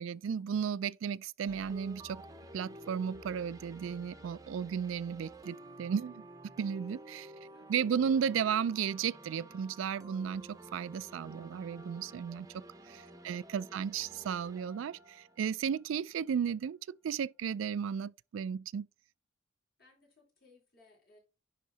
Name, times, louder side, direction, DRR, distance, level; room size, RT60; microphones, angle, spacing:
voice 1, 0.0-2.2 2.5-6.3 6.6-7.3 7.7-12.5 12.9-18.9, right 7 dB, 85° right, 0.3 m, -34 dB
sound 1, 1.5-16.3, right 1 dB, 20° right, 0.7 m, -52 dB
voice 2, 7.4-7.9 13.1-13.9 19.8-21.2, left 2 dB, 50° left, 4.7 m, -65 dB
10.5 x 3.7 x 4.0 m
head